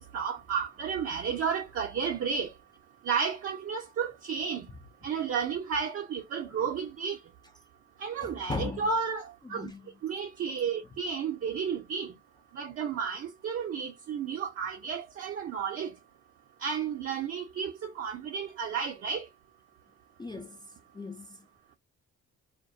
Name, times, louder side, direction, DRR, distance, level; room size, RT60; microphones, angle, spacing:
voice 1, 0.1-2.5 3.0-4.7 5.0-7.2 8.0-9.7 10.0-12.1 12.5-15.9 16.6-19.3, right 6 dB, 50° right, 0.5 m, -32 dB
voice 2, 8.2-8.9 9.4-9.9 20.2-20.7 20.9-21.5, left 3 dB, 15° left, 0.3 m, -38 dB
2.2 x 2.1 x 2.6 m
cardioid pair, 90°, 30 cm